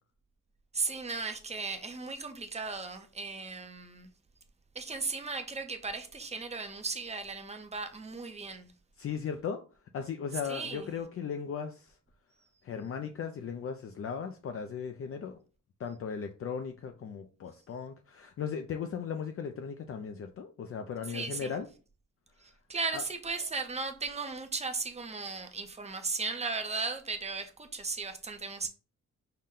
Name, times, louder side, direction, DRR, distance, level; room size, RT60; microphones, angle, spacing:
voice 1, 0.7-4.1 4.7-8.7 10.5-11.0 21.1-21.5 22.4-28.7, right 4 dB, 25° right, 0.6 m, -36 dB
voice 2, 9.0-9.6 9.9-11.9 12.6-15.4 15.8-21.7 22.9-23.0, left 7 dB, 50° left, 0.5 m, -37 dB
5.6 x 2.2 x 3.7 m
cardioid pair, 120°, 29 cm